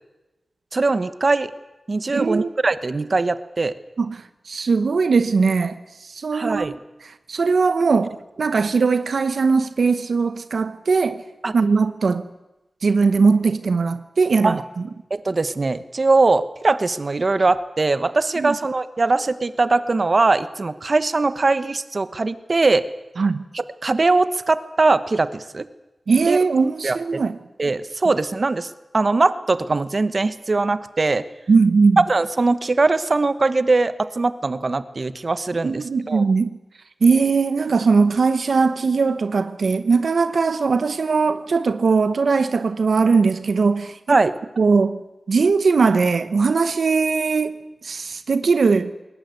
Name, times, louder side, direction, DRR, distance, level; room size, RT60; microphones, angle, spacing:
voice 1, 0.7-1.5 1.9-3.8 6.3-6.7 11.4-11.6 14.4-14.6 15.1-22.8 23.5-25.7 26.3-26.4 26.8-27.2 27.6-31.2 32.0-36.2 44.1-44.3, right 3 dB, 50° right, 1.1 m, -21 dB
voice 2, 2.1-2.5 4.0-6.7 7.3-11.2 11.5-12.2 12.8-14.6 18.4-18.5 23.2-23.4 26.1-27.4 31.5-32.0 35.6-36.6 37.0-44.2 44.6-45.0 45.3-47.6 47.8-48.9, right 4 dB, 80° right, 0.9 m, -19 dB
21.5 x 18.5 x 9.6 m
wide cardioid pair, 80°, 0 cm